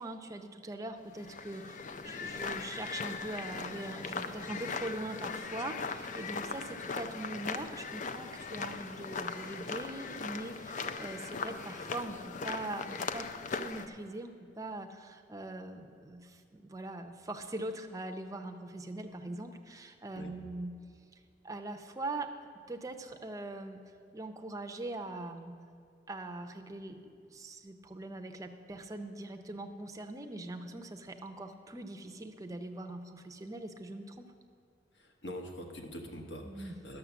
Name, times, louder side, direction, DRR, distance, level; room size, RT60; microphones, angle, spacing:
voice 1, 0.0-20.7 21.4-22.3 22.7-23.8 24.1-25.6 26.1-27.0 27.3-34.3 36.4-36.8, right 2 dB, 20° right, 5 dB, 0.6 m, -42 dB
sound 1, 1.1-13.9, left 4 dB, 40° left, 0.4 m, -39 dB
voice 2, 34.9-37.0, equal, 65° left, 3 dB, 1.2 m, -44 dB
11.0 x 6.7 x 7.0 m, 2.3 s
head